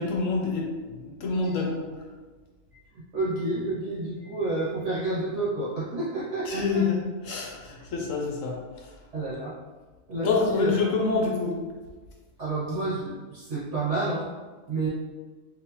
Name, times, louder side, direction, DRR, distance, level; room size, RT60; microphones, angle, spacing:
voice 1, 0.0-1.9 6.4-7.0 7.2-8.9 10.1-11.6, left 4 dB, 70° left, -1 dB, 0.9 m, -27 dB
voice 2, 3.1-6.9 9.1-9.5 10.1-10.8 12.4-14.3 14.7-14.9, right 2 dB, 55° right, -9 dB, 1.2 m, -29 dB
3.2 x 2.5 x 2.9 m, 1.3 s
omnidirectional pair, 1.5 m